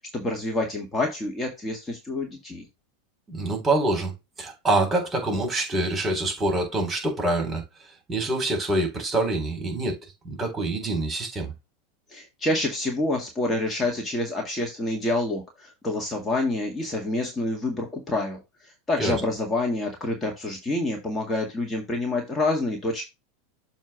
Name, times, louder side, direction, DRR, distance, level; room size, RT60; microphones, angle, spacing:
voice 1, 0.1-2.7 12.1-23.0, left 2 dB, 20° left, 1.8 m, -27 dB
voice 2, 3.3-4.1 4.4-7.6 8.1-10.0 10.2-11.5 19.0-19.2, right 2 dB, 20° right, 3.8 m, -25 dB
7.3 x 3.0 x 5.9 m
hypercardioid pair, 90°, 0 cm